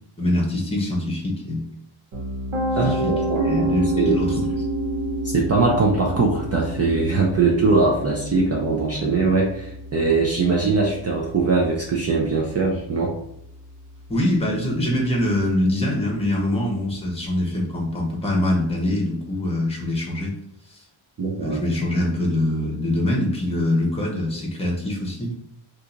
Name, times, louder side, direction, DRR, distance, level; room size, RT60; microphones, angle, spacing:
voice 1, 0.2-1.6 2.9-3.1 3.4-4.4 14.1-20.3 20.7-20.8 21.2-25.3, left 1 dB, 10° left, -2 dB, 0.9 m, -24 dB
Piano, 2.1-14.0, right 1 dB, 70° right, 1.0 m, -29 dB
voice 2, 2.8-4.2 5.2-13.1 21.2-21.6, right 3 dB, 35° right, -2 dB, 0.4 m, -21 dB
2.7 x 2.5 x 3.8 m, 0.75 s
wide cardioid pair, 150°, 48 cm